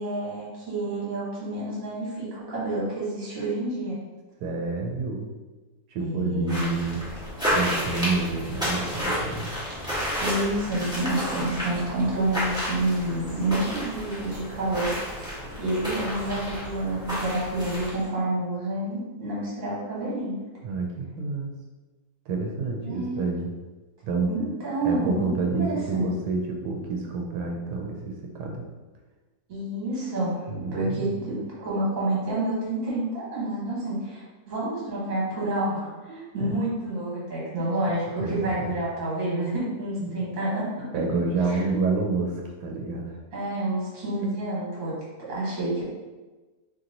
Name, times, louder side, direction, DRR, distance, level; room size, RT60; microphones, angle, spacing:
voice 1, 0.0-3.9 6.0-6.7 10.2-14.9 15.3-20.3 22.8-23.3 24.3-25.3 25.6-26.1 29.5-30.3 30.7-40.8 41.5-41.6 43.3-44.9 45.2-45.8, right 1 dB, 60° right, -7 dB, 1.6 m, -29 dB
voice 2, 4.4-5.3 5.9-7.0 7.5-9.5 20.6-21.5 22.3-23.5 24.0-24.3 24.8-28.7 30.5-31.2 36.1-36.7 37.8-37.9 38.2-38.8 40.0-40.3 40.9-43.2, right 3 dB, 90° right, 0 dB, 1.2 m, -29 dB
sound 1, 6.5-18.0, equal, 5° right, 1.0 m, -31 dB
2.9 x 2.8 x 3.8 m, 1.2 s
omnidirectional pair, 1.7 m